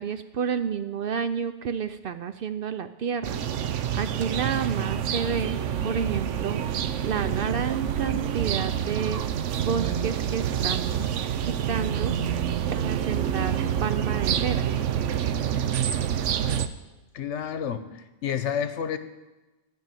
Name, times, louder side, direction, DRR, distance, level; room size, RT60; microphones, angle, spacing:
voice 1, 0.0-3.4 3.9-9.2 9.6-11.1 11.4-12.1 12.7-14.7, right 7 dB, 60° right, 10 dB, 0.6 m, -30 dB
sound 1, 3.2-16.7, right 9 dB, 85° right, 1.0 m, -27 dB
voice 2, 17.1-19.0, left 8 dB, 75° left, 11 dB, 1.1 m, -30 dB
12.5 x 5.6 x 9.0 m, 1.1 s
omnidirectional pair, 1.2 m